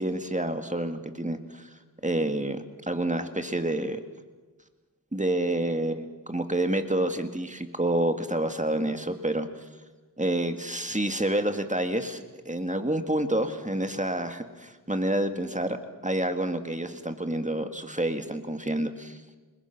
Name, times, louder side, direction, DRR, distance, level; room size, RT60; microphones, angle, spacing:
voice 1, 0.0-1.7 2.0-4.0 5.1-9.5 10.2-19.2, right 1 dB, 20° right, 7 dB, 2.0 m, -28 dB
28.0 x 21.0 x 6.0 m, 1.3 s
wide cardioid pair, 50°, 38 cm